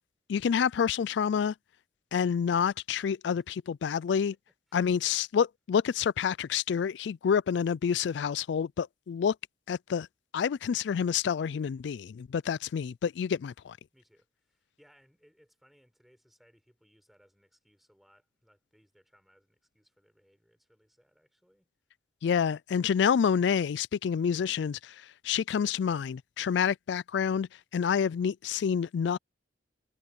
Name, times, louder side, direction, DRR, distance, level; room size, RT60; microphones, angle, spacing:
voice 1, 0.3-1.5 2.1-4.3 4.7-9.4 9.7-10.1 10.3-13.8 22.2-25.0 25.2-29.2, left 7 dB, 75° left, 0.3 m, -28 dB
voice 2, 4.7-5.2 13.9-21.7, equal, ahead, 5.2 m, -65 dB
head